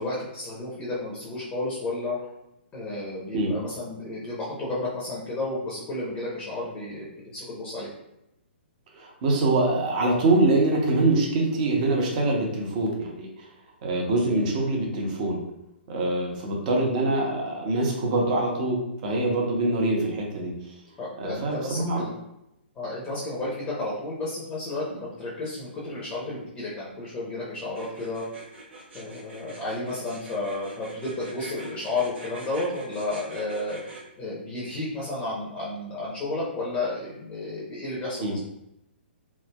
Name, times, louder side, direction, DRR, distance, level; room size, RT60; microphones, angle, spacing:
voice 1, 0.0-2.2 2.7-7.9 21.0-22.1 22.7-28.2 28.9-33.8 34.2-38.4, left 2 dB, 20° left, -6 dB, 0.7 m, -32 dB
voice 2, 8.9-13.4 13.8-15.4 15.9-20.5 21.2-22.0 38.2-38.3, right 2 dB, 40° right, -1 dB, 0.8 m, -24 dB
sound 1, 27.7-34.0, right 2 dB, 80° right, 1.2 m, -43 dB
3.2 x 2.0 x 2.2 m, 0.86 s
hypercardioid pair, 135°, 6 cm